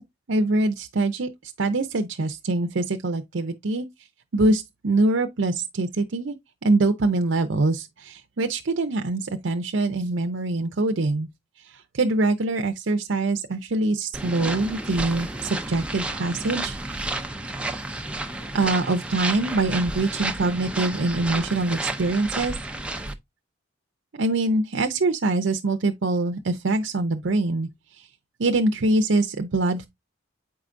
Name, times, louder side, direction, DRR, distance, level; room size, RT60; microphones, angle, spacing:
voice 1, 0.3-1.3 1.6-3.9 4.3-6.4 6.6-11.3 11.7-17.1 18.5-22.5 24.1-27.7 28.0-28.1 28.4-29.9, right 2 dB, 65° right, 0.6 m, -24 dB
sound 1, 14.1-23.1, right 2 dB, 5° right, 0.5 m, -31 dB
8.1 x 4.8 x 2.5 m
head